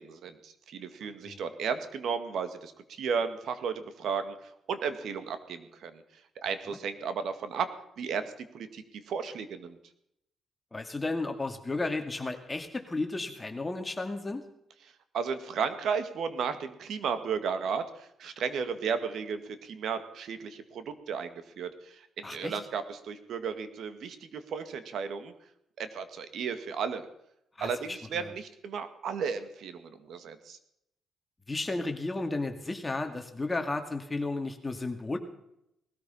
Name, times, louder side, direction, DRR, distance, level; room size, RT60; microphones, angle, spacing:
voice 1, 0.0-6.0 6.4-7.7 8.0-9.8 15.1-25.3 25.8-27.1 27.6-30.6, right 6 dB, 70° right, 10 dB, 2.0 m, -34 dB
voice 2, 10.7-14.4 22.2-22.6 27.6-28.3 31.5-35.2, left 2 dB, 20° left, 6 dB, 2.1 m, -33 dB
19.0 x 13.5 x 5.6 m, 0.79 s
cardioid pair, 90°, 0 cm